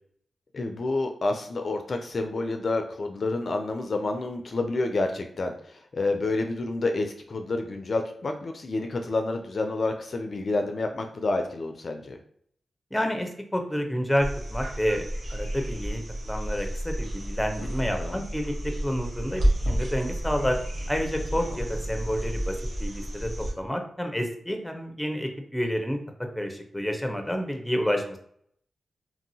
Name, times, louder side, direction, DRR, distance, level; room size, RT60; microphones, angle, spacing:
voice 1, 0.5-12.2 18.0-18.3, left 2 dB, 60° left, 5 dB, 0.4 m, -29 dB
voice 2, 12.9-18.5 18.8-20.6 20.9-23.3 23.6-26.0 26.4-28.2, equal, 5° left, 4 dB, 0.7 m, -29 dB
sound 1, 14.2-23.5 25.6-25.7, right 1 dB, 65° right, 1.1 m, -31 dB
2.9 x 2.6 x 2.7 m, 0.64 s
cardioid pair, 45°, 0 cm